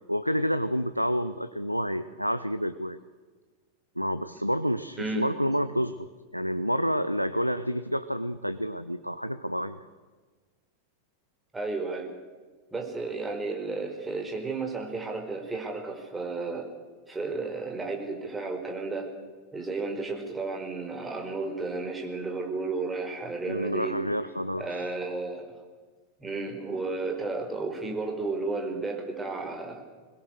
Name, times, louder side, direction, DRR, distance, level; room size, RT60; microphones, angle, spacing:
voice 1, 0.1-3.0 4.0-9.9 23.5-24.9, equal, 90° right, 13 dB, 0.6 m, -29 dB
voice 2, 11.5-12.1 12.7-16.7 17.1-19.1 19.5-24.0 24.6-25.6 26.2-29.8, right 3 dB, 10° right, 2 dB, 4.7 m, -33 dB
23.0 x 21.0 x 6.6 m, 1.4 s
figure-of-eight pair, 90°, 0 cm